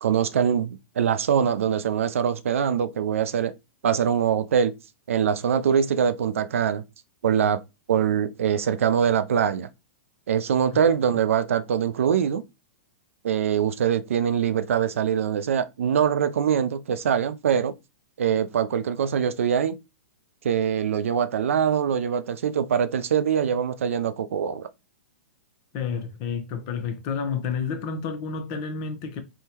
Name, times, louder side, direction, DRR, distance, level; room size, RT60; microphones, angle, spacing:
voice 1, 0.0-3.5 3.8-4.7 5.1-6.8 7.2-7.6 7.9-9.7 10.3-12.4 13.2-17.7 18.2-19.8 20.4-24.7, right 8 dB, 75° right, 0.3 m, -23 dB
voice 2, 25.7-29.2, left 6 dB, 45° left, 0.7 m, -30 dB
3.6 x 2.1 x 2.8 m
hypercardioid pair, 120°, 7 cm